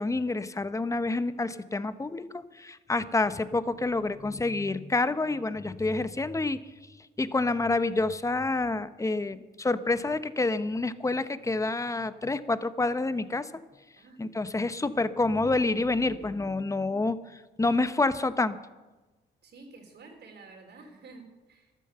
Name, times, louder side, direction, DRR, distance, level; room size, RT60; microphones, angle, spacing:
voice 1, 0.0-6.6 7.2-13.5 14.2-18.6, left 2 dB, 15° left, 13 dB, 0.8 m, -28 dB
voice 2, 19.4-21.7, right 3 dB, 60° right, 3 dB, 3.8 m, -50 dB
14.0 x 12.5 x 6.7 m, 1.2 s
cardioid pair, 90°, 20 cm